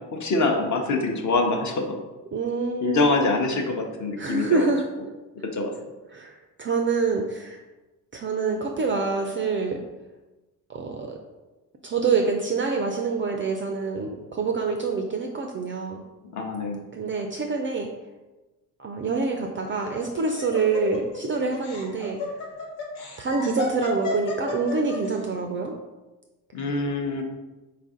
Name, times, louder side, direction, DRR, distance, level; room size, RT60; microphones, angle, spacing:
voice 1, 0.0-2.0 2.8-4.7 5.4-5.7 16.3-16.8 26.5-27.2, left 3 dB, 40° left, 3 dB, 0.8 m, -25 dB
voice 2, 2.3-3.0 4.2-4.8 6.1-7.6 8.1-9.8 10.7-11.2 11.8-16.0 16.9-17.9 18.8-22.4 23.2-25.7, right 4 dB, 30° right, 3 dB, 0.4 m, -26 dB
Laughter, 19.7-25.1, left 3 dB, 70° left, 1.0 m, -33 dB
4.2 x 2.5 x 3.7 m, 1.1 s
hypercardioid pair, 60°, 47 cm